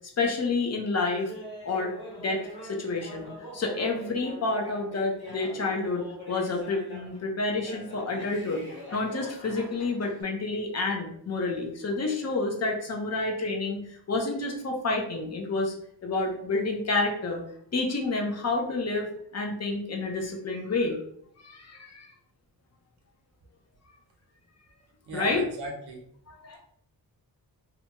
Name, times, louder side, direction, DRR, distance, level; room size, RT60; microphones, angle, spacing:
voice 1, 0.2-1.3 1.6-1.9 2.2-3.3 3.5-8.6 8.9-15.7 16.0-17.4 17.7-21.0 21.4-22.1 25.1-25.4 26.3-26.6, left 3 dB, 40° left, 1 dB, 0.7 m, -29 dB
Laughter, 1.3-7.2 7.6-10.2, left 1 dB, 85° left, 1.3 m, -44 dB
voice 2, 25.1-26.0, right 2 dB, 85° right, 1 dB, 0.8 m, -37 dB
2.8 x 2.2 x 2.8 m, 0.68 s
wide cardioid pair, 110°, 38 cm